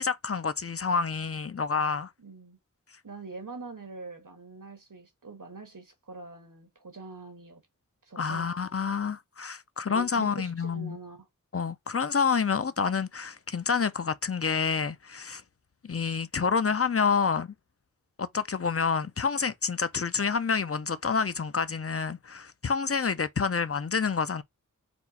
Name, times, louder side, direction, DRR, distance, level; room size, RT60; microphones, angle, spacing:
voice 1, 0.0-2.1 8.2-11.0 11.5-15.4 15.8-17.5 18.2-24.4, left 5 dB, 45° left, 0.5 m, -28 dB
voice 2, 2.2-2.6 3.0-7.6 8.1-8.5 9.9-11.3, right 3 dB, 75° right, 1.5 m, -44 dB
4.3 x 2.4 x 4.0 m
wide cardioid pair, 50°, 33 cm